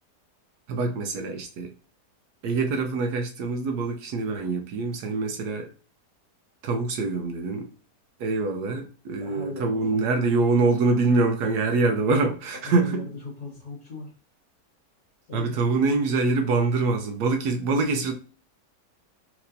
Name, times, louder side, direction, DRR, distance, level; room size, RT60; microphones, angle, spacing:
voice 1, 0.7-1.7 2.4-5.7 6.6-7.7 8.2-13.0 15.3-18.1, right 3 dB, 75° right, 1.1 m, -24 dB
voice 2, 9.2-10.1 12.6-14.1 15.3-15.5, left 3 dB, 65° left, 1.9 m, -38 dB
4.4 x 3.0 x 2.6 m
omnidirectional pair, 1.8 m